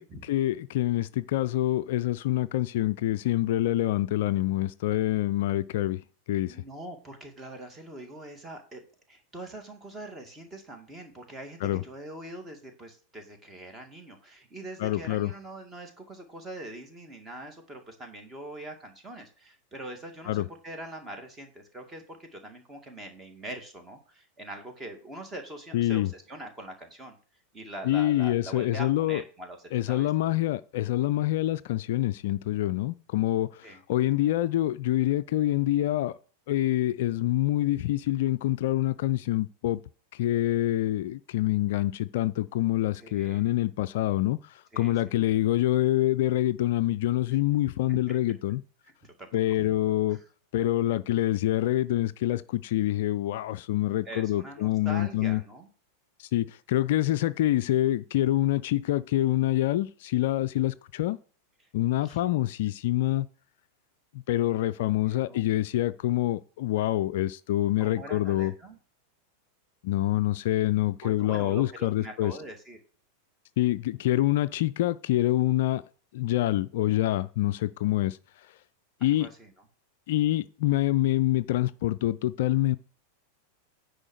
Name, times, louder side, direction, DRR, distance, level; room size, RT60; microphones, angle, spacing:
voice 1, 0.0-6.0 6.3-6.6 11.6-11.8 14.8-15.3 20.3-20.5 25.7-26.1 27.8-29.2 29.7-36.2 36.5-39.8 40.1-48.6 49.3-50.2 50.5-55.4 56.2-61.2 61.7-63.3 64.1-68.5 69.8-72.4 73.6-75.8 76.1-78.2 79.0-79.3 80.1-82.8, left 14 dB, 55° left, 0.4 m, -26 dB
voice 2, 6.5-8.8 9.1-27.2 27.5-30.1 33.6-33.8 43.0-43.5 44.7-45.1 47.9-48.1 49.2-49.3 49.6-49.7 50.1-50.2 54.1-55.7 62.0-62.2 65.1-65.4 67.8-68.8 71.0-72.8 79.0-79.5, right 1 dB, 15° right, 2.2 m, -43 dB
9.8 x 5.0 x 6.5 m
figure-of-eight pair, 90°, 0 cm